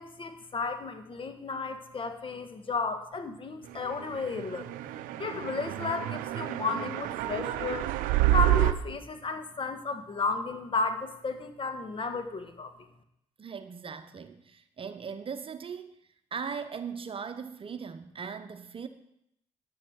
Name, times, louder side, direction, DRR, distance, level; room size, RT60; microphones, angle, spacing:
voice 1, 0.0-4.7 5.2-7.9 8.3-12.7, left 4 dB, 40° left, 8 dB, 1.5 m, -33 dB
sound 1, 4.3-8.7, right 15 dB, 75° right, 0.6 m, -28 dB
voice 2, 13.4-16.0 16.3-18.9, right 6 dB, 40° right, 10 dB, 0.9 m, -39 dB
9.6 x 9.5 x 4.6 m, 0.77 s
hypercardioid pair, 55°, 14 cm